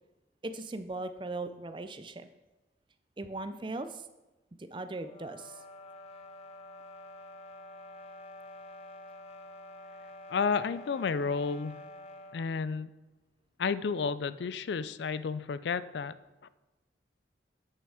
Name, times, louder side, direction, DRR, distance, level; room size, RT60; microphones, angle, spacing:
voice 1, 0.4-2.3 3.2-4.1 4.6-5.5, right 2 dB, 25° right, 10 dB, 0.4 m, -38 dB
sound 1, 5.0-12.5, left 1 dB, 35° left, 0.8 m, -48 dB
voice 2, 10.3-11.8 12.3-12.9 13.6-16.1 16.4-16.5, left 5 dB, 70° left, 16 dB, 0.4 m, -31 dB
8.8 x 6.7 x 4.8 m, 1.1 s
head